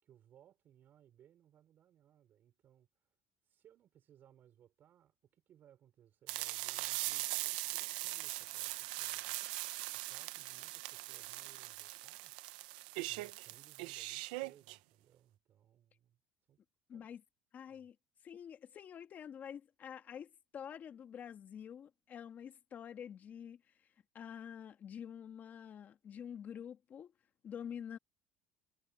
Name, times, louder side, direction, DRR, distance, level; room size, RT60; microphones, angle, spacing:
voice 1, 0.0-3.1 3.4-9.3 9.9-12.4 13.1-16.2 16.5-16.6 16.9-17.1 17.6-17.9, right 10 dB, 45° right, 6.0 m, -65 dB
sound 1, 6.3-14.8, right 20 dB, 90° right, 0.9 m, -41 dB
voice 2, 16.9-17.2 17.5-18.0 18.2-23.6 24.1-27.1 27.4-28.0, left 8 dB, 40° left, 1.9 m, -47 dB
supercardioid pair, 120°, 5 cm